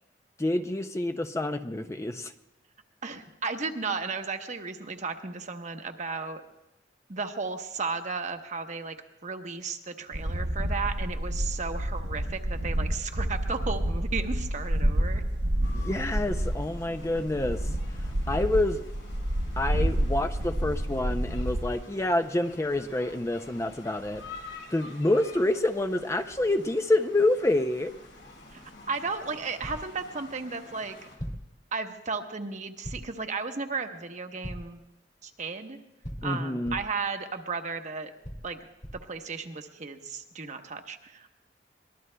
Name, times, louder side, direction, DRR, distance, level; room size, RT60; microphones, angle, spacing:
voice 1, 0.4-2.3 15.7-17.6 18.3-18.8 19.6-24.2 24.7-27.9 36.2-36.8, left 2 dB, 15° left, 8 dB, 0.5 m, -27 dB
voice 2, 3.0-6.4 7.1-9.0 9.2-15.2 28.5-28.6 28.9-31.0 31.7-34.8 35.2-35.8 36.2-38.1 38.4-38.6 39.1-41.3, right 4 dB, 45° right, 6 dB, 1.0 m, -34 dB
sound 1, 10.1-21.7, right 1 dB, 65° right, 1.0 m, -29 dB
sound 2, 15.6-31.2, left 2 dB, 90° left, 4.4 m, -48 dB
sound 3, 29.6-30.0 31.2-31.6 32.8-33.2 34.4-34.8 36.0-37.0 38.2-39.1, equal, 40° left, 2.0 m, -40 dB
23.5 x 20.0 x 2.2 m, 0.93 s
head